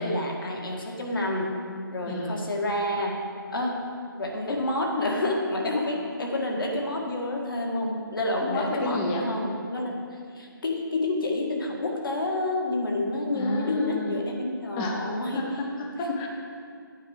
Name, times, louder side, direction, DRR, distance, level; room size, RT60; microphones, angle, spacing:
voice 1, 0.0-1.5 1.9-3.2 3.5-3.8 4.2-9.9 10.3-15.4, left 2 dB, 65° left, 0 dB, 1.8 m, -28 dB
voice 2, 2.1-2.4 8.4-9.3 13.3-14.2 14.8-16.3, left 1 dB, 10° left, 1 dB, 0.4 m, -32 dB
8.8 x 4.9 x 7.2 m, 2.3 s
figure-of-eight pair, 160°, 12 cm